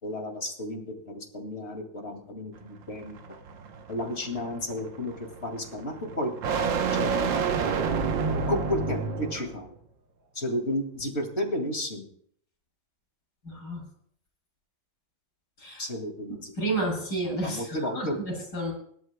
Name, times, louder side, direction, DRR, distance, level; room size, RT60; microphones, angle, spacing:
voice 1, 0.0-3.4 3.9-6.4 6.9-7.1 8.5-9.8 10.3-12.1 15.8-16.5 17.4-18.2, left 1 dB, 35° left, 3 dB, 2.4 m, -32 dB
sound 1, 2.6-9.6, right 5 dB, 75° right, 1.7 m, -29 dB
voice 2, 13.4-13.8 15.6-15.8 16.6-18.7, right 2 dB, 65° left, -2 dB, 8.5 m, -31 dB
26.5 x 12.5 x 2.3 m, 0.63 s
omnidirectional pair, 2.1 m